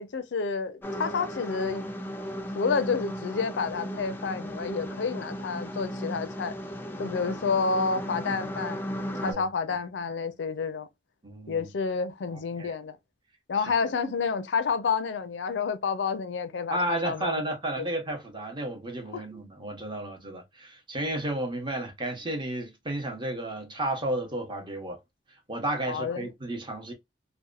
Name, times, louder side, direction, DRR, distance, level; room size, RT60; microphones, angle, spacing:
voice 1, 0.0-1.9 2.5-6.6 7.0-8.8 9.2-10.9 11.5-13.0 13.5-17.3 17.8-17.9 19.1-19.3 25.9-26.3, left 5 dB, 90° left, 0.5 m, -29 dB
sound 1, 0.8-9.3, equal, 10° left, 0.3 m, -36 dB
voice 2, 11.2-11.7 12.6-12.7 16.7-25.0 25.5-26.9, right 1 dB, 25° right, 0.8 m, -32 dB
2.8 x 2.1 x 2.3 m
head